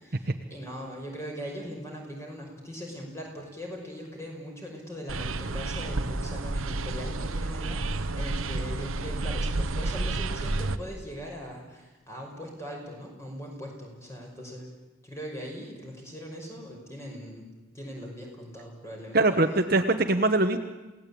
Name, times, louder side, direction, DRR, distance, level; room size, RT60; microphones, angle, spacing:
voice 1, 0.0-14.7 15.0-17.5 17.7-19.2, equal, 15° left, 0 dB, 5.7 m, -40 dB
sound 1, 5.1-10.8, right 2 dB, 85° right, 1.0 m, -30 dB
voice 2, 19.1-20.6, right 2 dB, 45° right, 7 dB, 1.1 m, -22 dB
28.5 x 17.5 x 8.6 m, 1.1 s
head